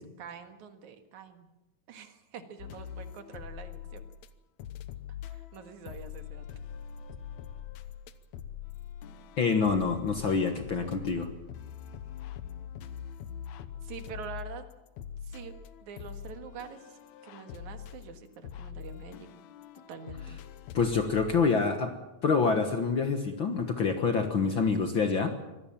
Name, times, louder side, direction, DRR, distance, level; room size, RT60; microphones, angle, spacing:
voice 1, 0.2-1.5 1.9-4.1 5.3-6.4 13.8-14.7 15.2-15.5 15.8-19.3 19.9-20.4, right 6 dB, 75° right, 7 dB, 3.1 m, -45 dB
sound 1, 2.6-4.3 4.6-21.3, left 9 dB, 75° left, 2.2 m, -43 dB
voice 2, 9.4-11.3 20.7-21.9 22.2-25.3, left 5 dB, 50° left, 6 dB, 1.8 m, -26 dB
25.0 x 17.5 x 7.3 m, 1.0 s
omnidirectional pair, 3.4 m